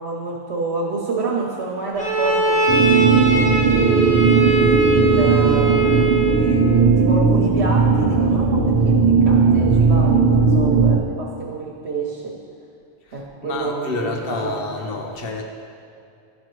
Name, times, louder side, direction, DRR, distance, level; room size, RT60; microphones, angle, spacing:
voice 1, 0.0-4.3 4.9-12.2 13.1-14.6, right 3 dB, 85° right, -3 dB, 1.2 m, -28 dB
Bowed string instrument, 2.0-6.6, right 3 dB, 10° left, 0.6 m, -20 dB
sound 1, 2.7-11.0, right 4 dB, 65° right, 0.9 m, -17 dB
voice 2, 13.1-15.4, left 2 dB, 60° left, 1 dB, 1.0 m, -28 dB
11.0 x 4.3 x 3.1 m, 2.5 s
omnidirectional pair, 1.1 m